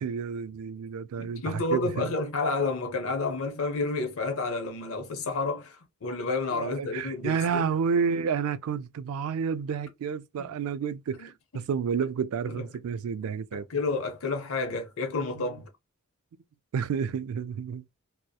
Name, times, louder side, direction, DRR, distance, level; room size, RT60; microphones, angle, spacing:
voice 1, 0.0-2.1 6.5-13.7 15.3-15.6 16.7-18.0, right 6 dB, 75° right, 0.3 m, -30 dB
voice 2, 1.2-7.7 10.4-10.5 11.2-11.3 12.5-12.6 13.5-15.7, left 3 dB, 70° left, 0.7 m, -30 dB
2.8 x 2.0 x 2.2 m
head